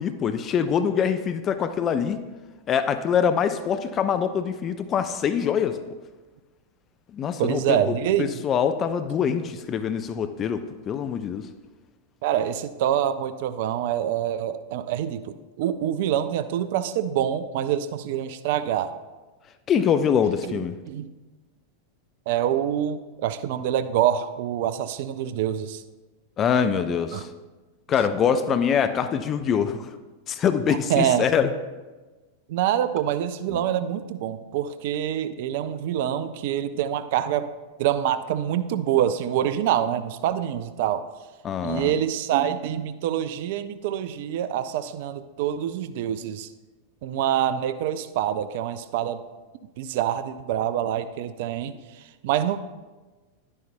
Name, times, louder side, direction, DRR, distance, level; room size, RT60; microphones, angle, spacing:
voice 1, 0.0-2.2 2.7-5.8 7.1-11.5 19.7-20.7 26.4-27.3 27.9-30.0 30.3-31.5 33.5-33.6 41.4-41.9, left 7 dB, 30° left, 10 dB, 0.4 m, -24 dB
voice 2, 7.4-8.4 12.2-18.9 20.5-20.6 20.9-21.1 22.3-25.8 27.1-27.2 30.7-31.3 32.5-37.5 37.8-41.0 41.6-46.5 47.0-49.2 49.8-51.8 52.2-52.6, right 10 dB, 50° right, 13 dB, 0.4 m, -26 dB
11.0 x 9.7 x 2.2 m, 1.2 s
figure-of-eight pair, 90°, 0 cm